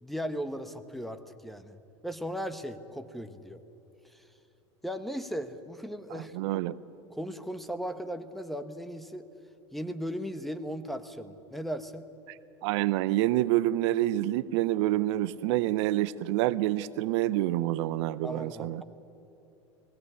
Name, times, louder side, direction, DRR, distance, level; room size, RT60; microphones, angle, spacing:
voice 1, 0.0-1.8 2.0-3.6 4.0-4.3 4.8-6.4 7.1-9.2 9.7-12.1 18.2-18.8, equal, ahead, 10 dB, 1.2 m, -37 dB
voice 2, 6.1-6.8 12.6-18.8, right 15 dB, 65° right, 17 dB, 0.6 m, -27 dB
20.0 x 16.5 x 9.9 m, 3.0 s
hypercardioid pair, 95°, 16 cm